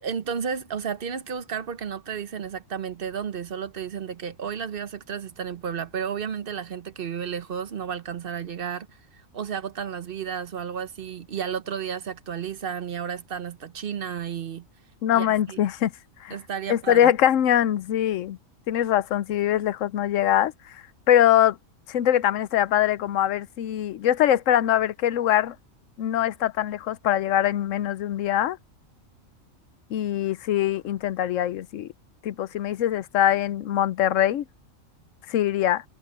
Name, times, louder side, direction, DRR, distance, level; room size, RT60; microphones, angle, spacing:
voice 1, 0.0-8.9 9.1-14.7 15.1-15.6 16.3-17.1, right 7 dB, 50° right, 0.9 m, -32 dB
voice 2, 15.0-15.9 16.2-16.4 16.7-18.4 18.7-20.5 21.1-21.6 21.9-25.5 26.0-28.6 29.9-31.9 32.2-34.4 35.3-35.8, left 11 dB, 75° left, 1.0 m, -22 dB
omnidirectional pair, 1.4 m